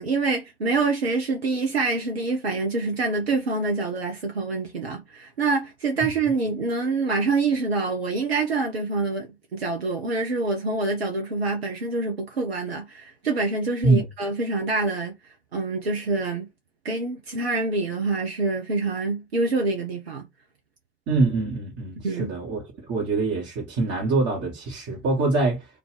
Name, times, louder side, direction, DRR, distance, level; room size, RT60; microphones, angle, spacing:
voice 1, 0.0-15.1 15.5-16.5 16.8-20.2 22.0-22.3, right 3 dB, 90° right, 0.5 m, -26 dB
voice 2, 21.1-22.6 22.9-25.7, right 3 dB, 55° right, 1.3 m, -24 dB
4.6 x 2.3 x 3.6 m
figure-of-eight pair, 50°, 30 cm